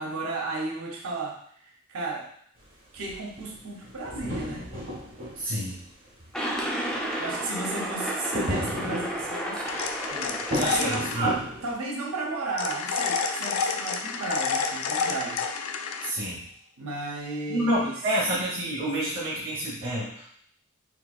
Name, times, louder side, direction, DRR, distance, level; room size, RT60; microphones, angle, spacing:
voice 1, 0.0-2.3 2.9-4.7 7.2-15.4 16.8-17.9, right 3 dB, 90° right, -1 dB, 0.7 m, -34 dB
sound 1, 2.6-2.7 3.0-6.1 6.6-6.7 6.9-7.2 8.3-9.6 10.5-11.7, equal, 70° right, 1.3 m, -34 dB
voice 2, 5.3-5.8 10.5-11.3 16.0-16.5 17.5-20.3, right 1 dB, 50° right, -9 dB, 1.0 m, -28 dB
sound 2, 6.3-11.3, equal, 5° left, 0.4 m, -32 dB
sound 3, 9.7-11.2 12.6-16.1, left 5 dB, 85° left, 0.4 m, -29 dB
3.8 x 2.6 x 2.3 m, 0.63 s
head